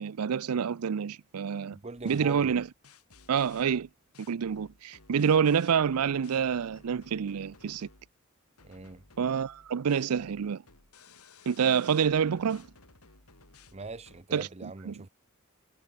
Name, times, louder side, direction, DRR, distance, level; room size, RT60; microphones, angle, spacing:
voice 1, 0.0-1.8 2.0-2.7 3.3-3.9 4.3-7.9 9.2-10.6 11.5-12.7 14.3-15.0, right 7 dB, 90° right, 0.5 m, -27 dB
voice 2, 1.7-2.5 8.6-9.0 13.7-15.1, right 3 dB, 30° right, 0.8 m, -41 dB
sound 1, 2.0-8.1 8.6-14.2, left 3 dB, 85° left, 5.7 m, -57 dB
head